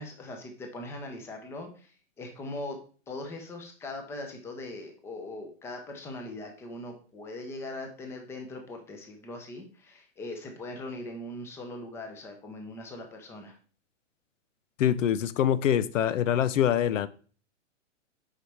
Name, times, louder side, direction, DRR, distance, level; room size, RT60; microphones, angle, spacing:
voice 1, 0.0-1.9 2.2-2.8 3.1-13.6, left 2 dB, 5° left, 4 dB, 0.6 m, -40 dB
voice 2, 14.8-17.1, left 10 dB, 85° left, 17 dB, 0.6 m, -24 dB
7.3 x 5.0 x 3.4 m, 0.40 s
hypercardioid pair, 150°, 37 cm